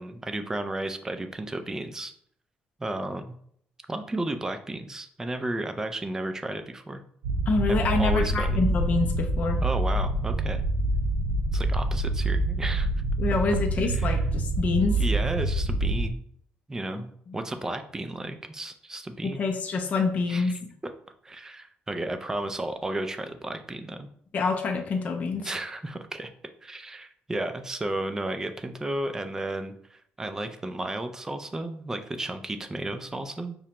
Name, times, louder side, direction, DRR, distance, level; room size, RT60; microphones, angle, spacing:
voice 1, 0.0-2.1 2.8-3.4 3.9-7.0 7.7-8.6 9.6-10.6 11.5-12.9 13.8-14.2 15.0-16.2 16.7-19.4 20.3-20.5 21.2-24.1 25.4-26.3 26.6-33.6, right 1 dB, 15° right, 8 dB, 0.4 m, -33 dB
sound 1, 7.2-16.1, right 2 dB, 80° right, 0.5 m, -26 dB
voice 2, 7.5-9.6 13.2-15.0 16.9-17.0 19.2-20.5 24.3-25.5, left 4 dB, 45° left, 2 dB, 0.4 m, -26 dB
4.9 x 2.1 x 2.8 m, 0.64 s
cardioid pair, 120°, 4 cm